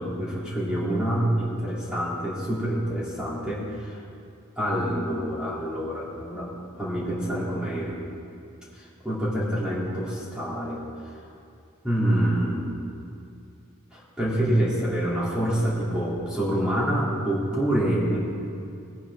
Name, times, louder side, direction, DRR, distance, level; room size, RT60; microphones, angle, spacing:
voice 1, 0.0-4.0 4.6-6.5 6.8-8.0 8.7-10.8 11.8-12.8 13.9-18.2, right 1 dB, 5° right, -8 dB, 2.9 m, -26 dB
18.5 x 9.8 x 3.7 m, 2.5 s
head